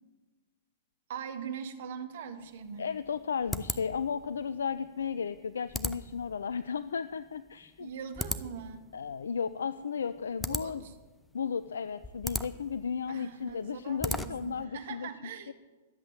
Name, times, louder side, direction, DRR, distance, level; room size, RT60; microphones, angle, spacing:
voice 1, 1.1-2.9 7.8-8.9 10.4-10.9 13.1-15.5, right 7 dB, 55° right, 7 dB, 1.4 m, -42 dB
sound 1, 2.4-14.6, left 1 dB, 5° left, 0.6 m, -40 dB
voice 2, 2.8-7.9 8.9-10.8 11.3-15.1 15.5-15.6, left 6 dB, 75° left, 14 dB, 0.4 m, -34 dB
12.5 x 8.1 x 8.7 m, 1.3 s
figure-of-eight pair, 105°, 0 cm